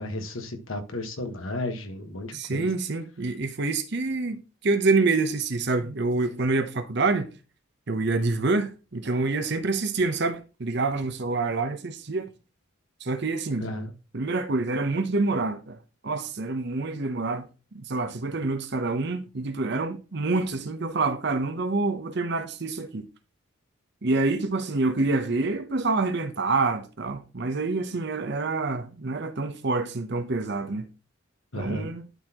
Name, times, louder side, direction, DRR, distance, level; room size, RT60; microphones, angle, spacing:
voice 1, 0.0-2.7 13.6-13.9 31.5-31.9, left 1 dB, 75° left, 1.4 m, -33 dB
voice 2, 2.3-7.3 7.9-12.3 13.0-13.7 14.1-15.8 16.0-17.4 17.7-23.1 24.0-30.9 31.5-32.1, right 3 dB, 55° right, 0.8 m, -27 dB
11.5 x 4.1 x 2.9 m
head